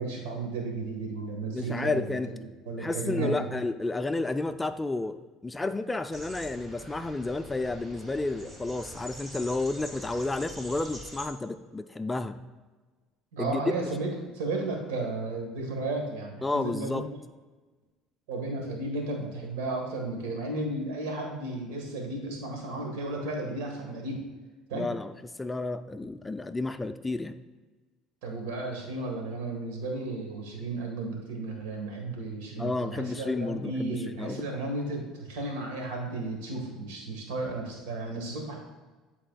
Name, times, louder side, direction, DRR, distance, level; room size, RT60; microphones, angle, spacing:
voice 1, 0.0-3.5 13.3-16.9 18.3-24.2 24.7-24.9 28.2-38.6, right 2 dB, 90° right, 1 dB, 1.5 m, -34 dB
voice 2, 1.5-2.3 2.8-5.2 5.4-12.4 13.4-13.6 16.4-17.1 24.7-25.1 25.4-27.4 32.6-34.4, left 2 dB, 15° left, 10 dB, 0.4 m, -31 dB
sound 1, 6.1-11.3, equal, 20° right, 1.4 m, -44 dB
10.5 x 4.1 x 2.3 m, 1.3 s
supercardioid pair, 95°, 0 cm